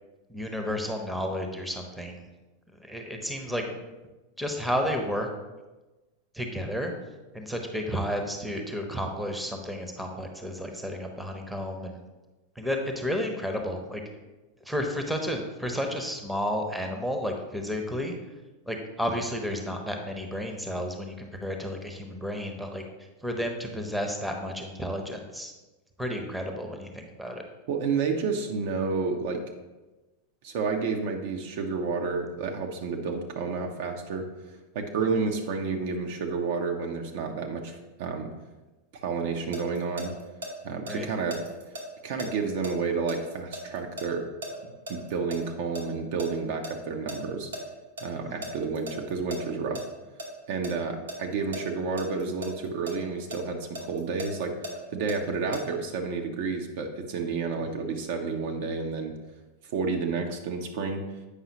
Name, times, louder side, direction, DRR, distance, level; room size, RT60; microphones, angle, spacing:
voice 1, 0.3-2.3 2.8-3.9 4.4-5.3 6.3-6.9 7.3-12.0 12.6-14.0 14.6-18.1 18.7-22.8 23.2-25.5 26.0-27.4 40.9-41.1 48.2-48.4, equal, ahead, 3 dB, 0.8 m, -32 dB
voice 2, 27.7-29.4 30.4-38.3 39.0-40.1 40.6-41.4 42.0-44.3 44.6-47.5 48.0-49.8 50.5-54.6 54.9-59.1 59.7-61.1, right 4 dB, 50° right, 3 dB, 0.7 m, -30 dB
sound 1, 39.1-40.5 40.9-45.4 45.7-47.6 48.0-48.1 48.4-49.8 50.2-50.7 51.1-52.9 53.3-55.6, right 1 dB, 70° right, 1.1 m, -38 dB
8.2 x 5.4 x 2.9 m, 1.1 s
figure-of-eight pair, 90°, 0 cm